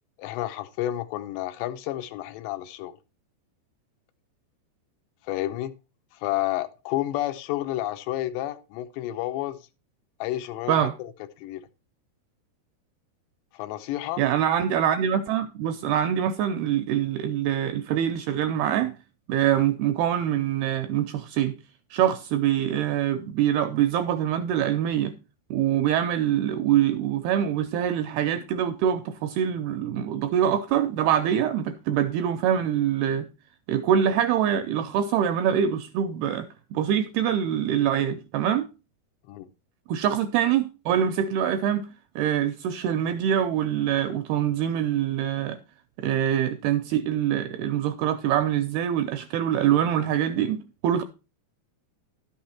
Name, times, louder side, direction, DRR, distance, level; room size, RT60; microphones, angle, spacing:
voice 1, 0.2-3.0 5.2-5.7 6.1-9.6 10.2-11.1 11.4-11.6 13.5-14.2 39.3-39.5, left 14 dB, 80° left, 2.8 m, -30 dB
voice 2, 14.2-19.0 19.3-21.6 21.9-25.2 25.5-33.3 33.7-38.7 39.9-41.9 42.2-45.6 46.0-51.0, right 10 dB, 85° right, 2.3 m, -24 dB
11.5 x 6.4 x 4.3 m
omnidirectional pair, 5.1 m